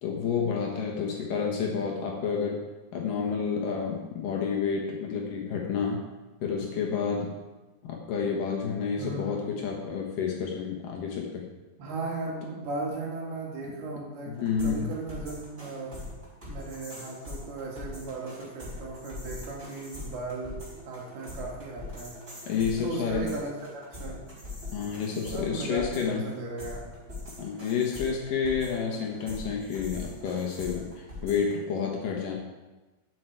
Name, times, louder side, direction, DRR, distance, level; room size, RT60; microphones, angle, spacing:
voice 1, 0.0-2.6 2.9-6.0 6.4-7.3 7.8-11.4 14.3-14.9 22.5-23.3 24.7-26.2 27.4-32.4, left 6 dB, 65° left, 0 dB, 2.5 m, -30 dB
voice 2, 9.0-9.7 11.8-16.0 16.5-22.2 22.8-24.3 25.3-26.8, right 3 dB, 70° right, -2 dB, 3.8 m, -37 dB
sound 1, 14.3-31.5, left 2 dB, 15° right, 4.4 m, -42 dB
12.0 x 7.9 x 4.6 m, 1.1 s
omnidirectional pair, 4.7 m